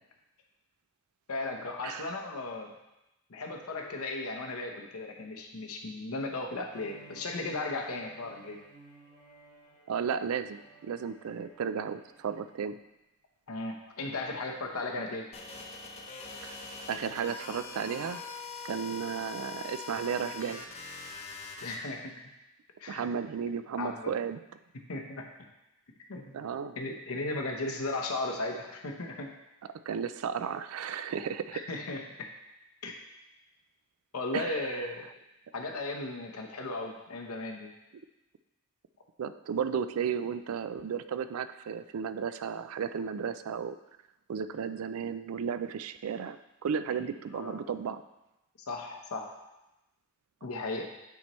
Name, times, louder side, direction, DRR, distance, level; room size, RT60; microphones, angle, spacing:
voice 1, 1.3-2.7 3.3-8.6 13.5-15.3 21.6-22.3 22.8-23.1 23.8-24.1 24.9-25.3 26.1-26.4 26.8-29.4 31.5-32.3 32.8-33.0 34.1-35.1 35.5-37.7 46.9-47.0 47.3-47.7 48.7-49.4 50.4-50.9, left 2 dB, 80° left, 2 dB, 0.9 m, -36 dB
Bowed string instrument, 6.7-12.7, right 2 dB, 40° right, 1.7 m, -56 dB
voice 2, 9.9-12.8 16.4-16.6 16.9-18.2 18.6-20.6 22.9-24.4 26.3-26.8 29.9-31.6 34.3-34.8 39.2-43.8 44.3-48.0, right 7 dB, 75° right, 11 dB, 0.4 m, -34 dB
sound 1, 15.3-21.8, left 4 dB, 30° left, 0.7 m, -42 dB
9.4 x 4.3 x 3.1 m, 0.96 s
head